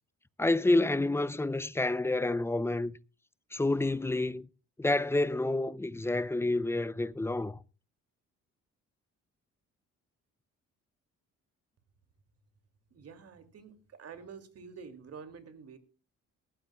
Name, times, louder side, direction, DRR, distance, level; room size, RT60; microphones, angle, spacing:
voice 1, 0.4-3.0 3.5-4.5 4.8-7.6, left 2 dB, 10° left, 0.5 m, -29 dB
voice 2, 12.9-15.8, right 6 dB, 55° right, 2.6 m, -48 dB
18.5 x 15.0 x 2.3 m
cardioid pair, 90°, 30 cm